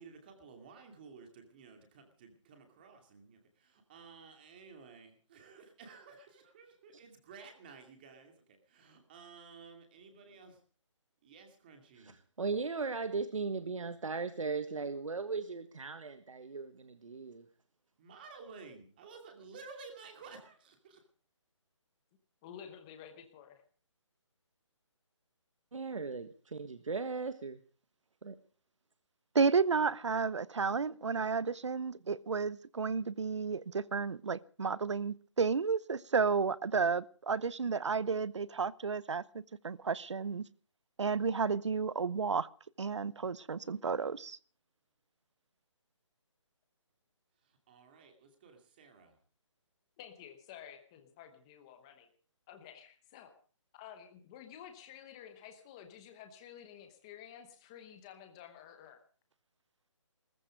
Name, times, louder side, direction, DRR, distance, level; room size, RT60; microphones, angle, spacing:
voice 1, 0.0-10.6 11.2-12.2 18.0-21.1 47.4-49.2, right 4 dB, 20° right, 2.4 m, -54 dB
voice 2, 12.0-17.4 25.7-27.6 28.2-28.3, right 4 dB, 90° right, 1.5 m, -37 dB
voice 3, 22.4-23.6 50.0-52.1 52.5-53.3 53.7-59.0, left 9 dB, 10° left, 0.9 m, -52 dB
voice 4, 29.3-40.4 41.0-42.5 42.8-44.4, right 5 dB, 65° right, 0.9 m, -32 dB
19.0 x 14.5 x 5.1 m
hypercardioid pair, 175°, 16 cm